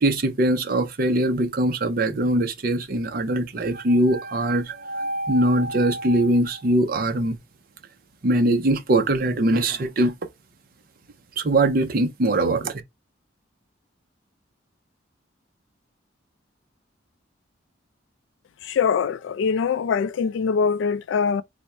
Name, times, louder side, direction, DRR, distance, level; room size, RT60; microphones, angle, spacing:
voice 1, 0.0-7.4 8.2-10.1 11.4-12.7, right 1 dB, 45° right, 0.5 m, -22 dB
voice 2, 18.6-21.4, left 6 dB, 70° left, 0.3 m, -23 dB
3.4 x 2.1 x 4.1 m
head